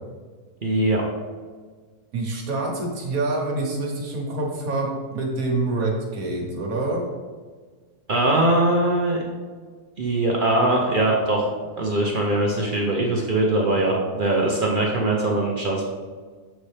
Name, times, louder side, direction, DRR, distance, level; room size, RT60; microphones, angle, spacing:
voice 1, 0.6-1.0 8.1-9.2 10.0-11.5 11.8-15.9, right 2 dB, 45° right, -2 dB, 0.7 m, -21 dB
voice 2, 2.1-7.1, right 2 dB, 65° right, 0 dB, 1.6 m, -26 dB
7.5 x 4.1 x 3.3 m, 1.5 s
omnidirectional pair, 1.7 m